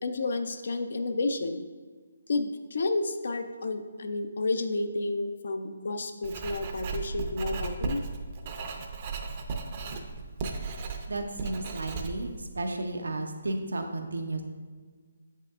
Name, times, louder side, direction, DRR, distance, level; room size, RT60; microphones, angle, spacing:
voice 1, 0.0-1.6 2.3-8.0, left 2 dB, 65° left, 8 dB, 0.5 m, -31 dB
Writing, 6.2-12.4, right 4 dB, 40° right, 0.6 m, -35 dB
voice 2, 11.1-14.4, right 2 dB, 80° right, 5 dB, 0.7 m, -33 dB
7.5 x 5.5 x 2.4 m, 1.5 s
figure-of-eight pair, 150°, 0 cm